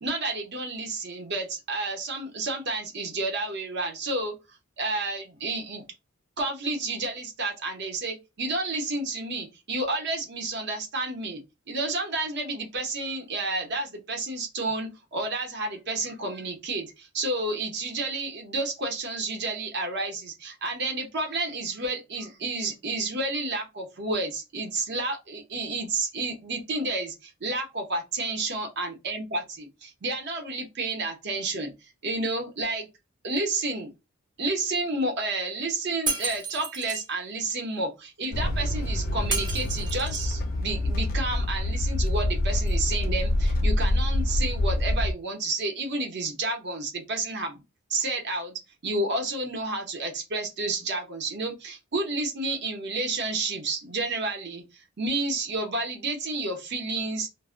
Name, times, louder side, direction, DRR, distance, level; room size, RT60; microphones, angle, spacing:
voice 1, 0.0-4.3 4.8-5.8 6.4-11.4 11.7-31.7 32.0-32.9 33.2-33.9 34.4-47.6 47.9-57.3, right 2 dB, 55° right, 3 dB, 0.7 m, -30 dB
Shatter, 36.1-37.1 39.3-40.4, right 4 dB, 20° right, 0.6 m, -32 dB
sound 1, 38.3-45.1, left 1 dB, 45° left, 0.4 m, -26 dB
2.1 x 2.0 x 3.6 m, 0.24 s
head